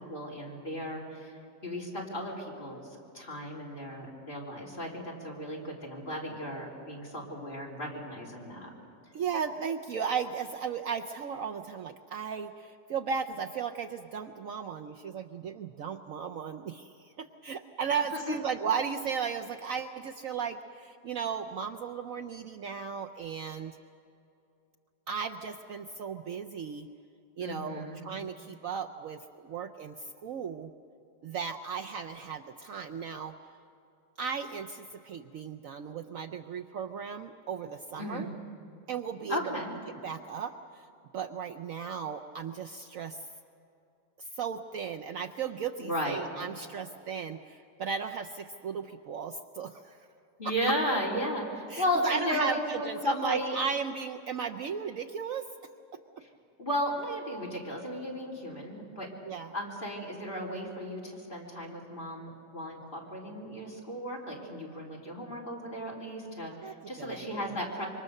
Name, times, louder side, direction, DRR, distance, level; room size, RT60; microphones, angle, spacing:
voice 1, 0.1-1.3 1.6-2.9 3.1-8.7 18.3-18.4 27.4-28.0 38.0-38.3 39.3-39.8 45.8-46.2 50.4-53.6 56.6-59.1 59.5-67.9, equal, 30° left, -2 dB, 3.9 m, -34 dB
voice 2, 9.1-23.8 25.1-26.9 27.4-30.7 31.2-33.3 34.2-38.3 38.9-39.4 40.0-40.8 41.1-43.2 44.2-50.0 50.7-50.8 51.7-55.5 59.3-59.5 66.6-67.6, right 6 dB, 65° right, 6 dB, 1.0 m, -36 dB
26.5 x 24.0 x 6.6 m, 2.7 s
omnidirectional pair, 1.7 m